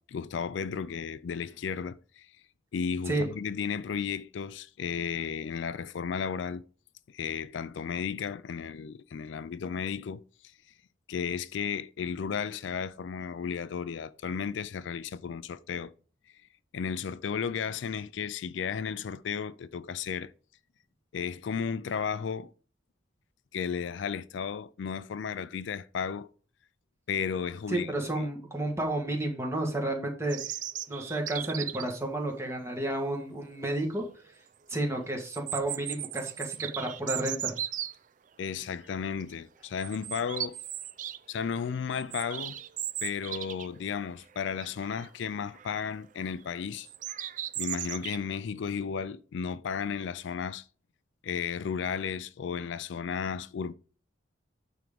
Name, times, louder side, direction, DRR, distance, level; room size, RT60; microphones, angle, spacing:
voice 1, 0.0-2.3 2.7-6.6 7.1-10.2 11.1-15.9 16.7-20.3 21.1-22.5 23.5-26.3 27.1-28.3 38.4-40.6 41.3-42.6 43.0-46.9 47.6-50.6 51.2-53.7, left 6 dB, 75° left, 0.4 m, -34 dB
voice 2, 27.7-30.4 30.9-34.0 34.7-37.6, right 1 dB, 15° right, 1.5 m, -31 dB
sound 1, 30.3-32.0 33.5-33.6 34.0-34.1 35.2-37.9 38.6-38.9 39.2-39.3 39.8-41.2 41.5-43.8 44.1-44.2 44.6-45.1 45.5-45.9 46.8-48.2, right 11 dB, 40° right, 0.4 m, -37 dB
9.1 x 3.6 x 5.1 m
head